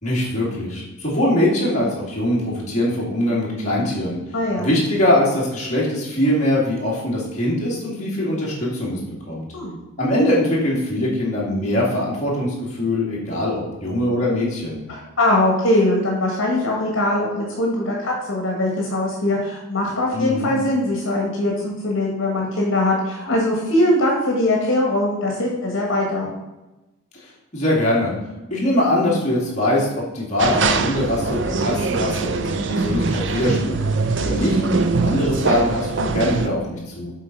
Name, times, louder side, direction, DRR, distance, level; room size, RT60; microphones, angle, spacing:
voice 1, 0.0-4.2 4.6-9.5 10.0-14.8 20.1-20.5 27.2-28.1 28.5-29.9 30.1-37.1, left 1 dB, 35° left, -5 dB, 2.3 m, -22 dB
voice 2, 4.3-4.7 9.5-9.8 14.9-26.3, left 1 dB, 65° left, -1 dB, 1.5 m, -21 dB
sound 1, 30.4-36.5, right 4 dB, 55° right, 0.5 m, -22 dB
7.5 x 4.1 x 5.3 m, 1.0 s
head